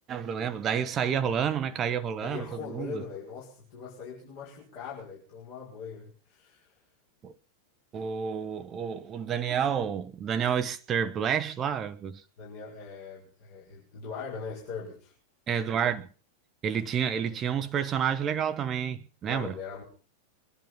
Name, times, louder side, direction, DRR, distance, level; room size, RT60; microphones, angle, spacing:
voice 1, 0.1-3.0 7.2-7.3 7.9-12.2 15.5-16.1 16.6-19.5, right 8 dB, 25° right, 0.9 m, -29 dB
voice 2, 2.2-6.8 12.4-15.1 19.3-19.8, left 5 dB, 50° left, 5.5 m, -41 dB
22.5 x 10.5 x 5.6 m
figure-of-eight pair, 90°, 0 cm